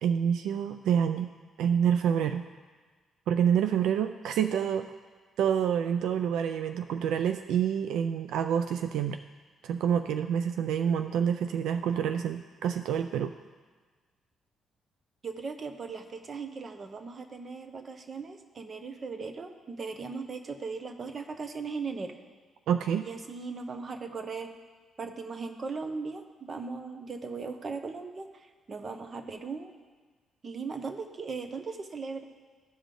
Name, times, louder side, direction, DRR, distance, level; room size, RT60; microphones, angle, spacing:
voice 1, 0.0-1.3 1.6-2.4 3.3-4.9 5.4-9.2 9.6-13.3 22.7-23.1, right 8 dB, 85° right, 8 dB, 0.3 m, -27 dB
voice 2, 15.2-22.1 23.0-24.6 25.0-29.7 30.4-32.2, right 4 dB, 40° right, 7 dB, 0.9 m, -38 dB
15.0 x 5.1 x 3.8 m, 1.4 s
cardioid pair, 90°, 0 cm